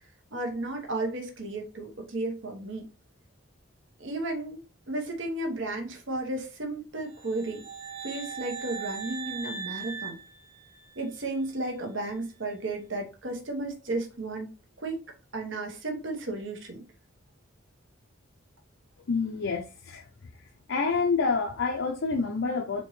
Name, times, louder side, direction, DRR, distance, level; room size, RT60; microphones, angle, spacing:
voice 1, 0.3-2.8 4.0-4.6 4.9-7.6 8.0-10.2 11.0-14.5 14.8-15.0 15.3-16.8, right 2 dB, 65° right, 1.1 m, -33 dB
sound 1, 7.1-11.2, right 6 dB, 30° right, 0.7 m, -39 dB
voice 2, 19.1-20.1 20.7-22.8, left 4 dB, 65° left, 0.5 m, -27 dB
4.3 x 3.0 x 3.1 m
head